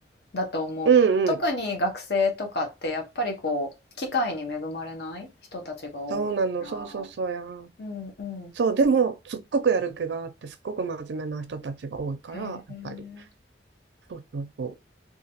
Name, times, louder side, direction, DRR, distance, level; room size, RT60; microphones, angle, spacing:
voice 1, 0.3-0.9 1.4-3.7 4.0-6.3 6.6-7.1 7.8-8.5 12.3-13.3, left 2 dB, 65° left, 0.9 m, -30 dB
voice 2, 0.9-1.4 6.1-7.7 8.6-13.0 14.1-14.7, right 5 dB, 80° right, 0.4 m, -26 dB
2.8 x 2.4 x 2.8 m
head